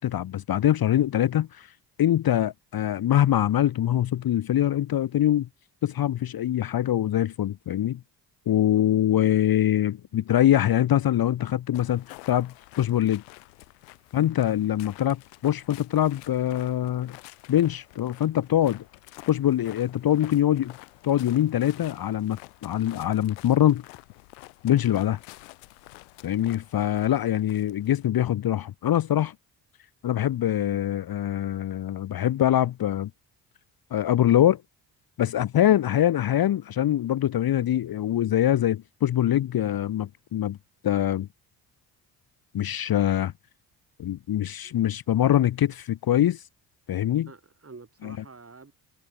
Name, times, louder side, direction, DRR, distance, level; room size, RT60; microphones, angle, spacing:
voice 1, 0.0-1.7 2.0-5.5 5.8-8.0 8.5-13.2 14.1-17.2 17.5-18.8 19.3-20.7 21.0-23.8 24.6-25.2 26.2-29.3 30.0-33.1 33.9-34.6 35.2-40.6 40.8-41.3 42.5-43.3 44.0-46.4 46.9-47.3 48.0-48.1, left 11 dB, 45° left, 1.0 m, -23 dB
sound 1, 11.7-28.1, left 31 dB, 80° left, 1.8 m, -49 dB
voice 2, 47.3-48.7, right 4 dB, 30° right, 8.0 m, -48 dB
hypercardioid pair, 50°, 49 cm